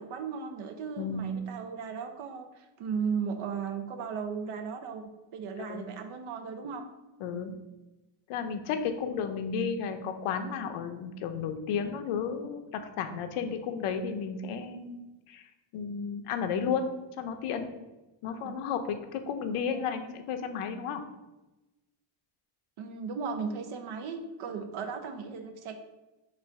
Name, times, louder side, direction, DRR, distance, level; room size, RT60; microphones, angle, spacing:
voice 1, 0.0-6.9 18.2-18.5 22.8-25.8, right 6 dB, 75° right, 6 dB, 0.7 m, -36 dB
voice 2, 1.0-1.4 5.6-5.9 7.2-7.5 8.3-12.6 13.0-15.4 15.7-16.9 17.2-17.7 18.2-21.0, left 6 dB, 80° left, 7 dB, 0.7 m, -33 dB
4.1 x 2.5 x 4.6 m, 1.1 s
cardioid pair, 105°, 50 cm